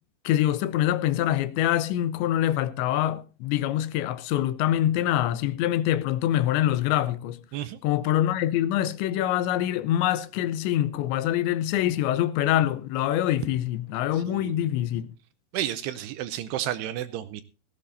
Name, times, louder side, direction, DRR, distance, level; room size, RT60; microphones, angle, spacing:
voice 1, 0.2-7.4 7.8-15.1, left 12 dB, 80° left, 3.1 m, -25 dB
voice 2, 14.1-14.6 15.5-17.4, right 12 dB, 80° right, 2.5 m, -32 dB
18.0 x 15.0 x 2.6 m
omnidirectional pair, 5.2 m